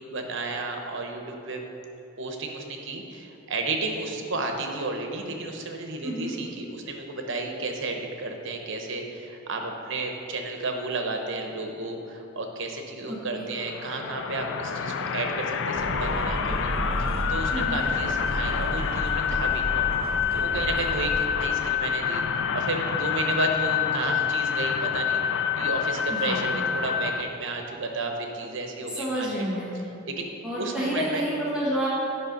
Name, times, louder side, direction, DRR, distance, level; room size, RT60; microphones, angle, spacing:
voice 1, 0.0-1.6 2.2-19.9 20.3-22.2 22.5-25.2 25.6-29.4 30.1-30.3 30.6-31.2, right 2 dB, 65° right, 3 dB, 1.0 m, -32 dB
voice 2, 6.0-6.3 13.1-13.4 17.5-17.8 26.1-26.5 28.9-29.7 30.4-31.9, right 1 dB, 5° right, -8 dB, 1.4 m, -29 dB
sound 1, 13.5-27.2, left 7 dB, 65° left, 0.5 m, -27 dB
sound 2, 15.7-21.2, right 1 dB, 30° right, 0.8 m, -33 dB
9.6 x 5.6 x 5.3 m, 2.9 s
head